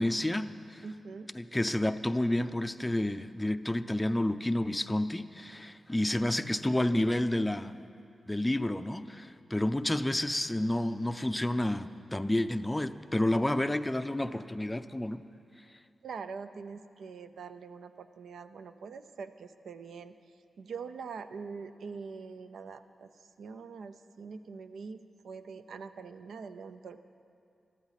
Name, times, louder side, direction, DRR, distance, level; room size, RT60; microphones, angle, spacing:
voice 1, 0.0-0.8 1.3-7.8 8.3-15.2, left 1 dB, 10° left, 9 dB, 0.5 m, -30 dB
voice 2, 0.8-1.3 16.0-20.2 20.6-27.0, right 5 dB, 90° right, 11 dB, 0.5 m, -44 dB
22.5 x 13.0 x 4.1 m, 2.6 s
wide cardioid pair, 110°, 0 cm